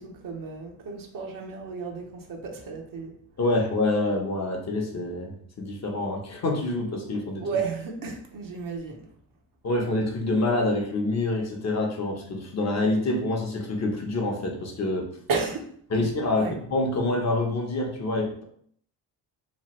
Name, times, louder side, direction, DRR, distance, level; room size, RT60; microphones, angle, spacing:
voice 1, 0.0-3.2 7.4-9.2 15.3-16.1 16.4-16.6, right 4 dB, 50° right, 1 dB, 0.8 m, -33 dB
voice 2, 3.4-7.4 9.6-15.1 15.9-18.4, left 2 dB, 40° left, 0 dB, 0.9 m, -26 dB
3.1 x 2.2 x 3.0 m, 0.62 s
supercardioid pair, 70°, 42 cm